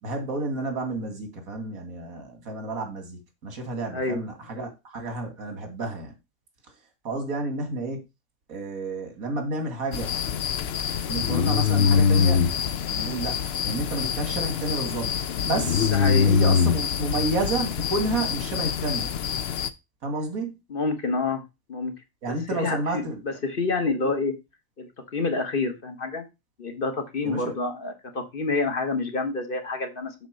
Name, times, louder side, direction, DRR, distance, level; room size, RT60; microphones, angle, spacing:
voice 1, 0.0-6.2 7.0-8.0 8.5-10.1 11.1-12.5 12.9-15.2 15.4-15.9 16.2-19.1 20.0-20.6 22.2-23.4 24.0-24.1 27.2-27.6, right 2 dB, 90° right, 2.3 m, -30 dB
sound 1, 9.9-19.7, left 7 dB, 60° left, 0.7 m, -24 dB
voice 2, 15.9-16.3 20.7-21.4 21.7-21.9 22.3-24.3 24.8-26.2 26.6-30.1, left 3 dB, 40° left, 1.3 m, -28 dB
7.3 x 4.0 x 6.3 m
omnidirectional pair, 1.4 m